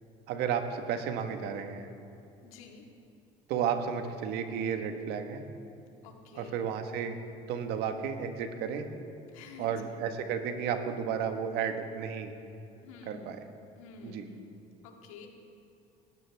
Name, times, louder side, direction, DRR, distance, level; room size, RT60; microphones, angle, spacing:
voice 1, 0.3-1.9 3.5-5.4 6.3-7.2 7.5-8.8 9.6-12.3 13.0-13.4 14.0-14.2, right 7 dB, 70° right, 6 dB, 1.6 m, -33 dB
voice 2, 2.4-2.8 6.0-6.6 9.3-9.7 12.8-13.3 13.8-14.5 14.8-15.3, left 5 dB, 90° left, 2 dB, 2.0 m, -49 dB
19.5 x 15.5 x 3.6 m, 2.7 s
supercardioid pair, 75°, 17 cm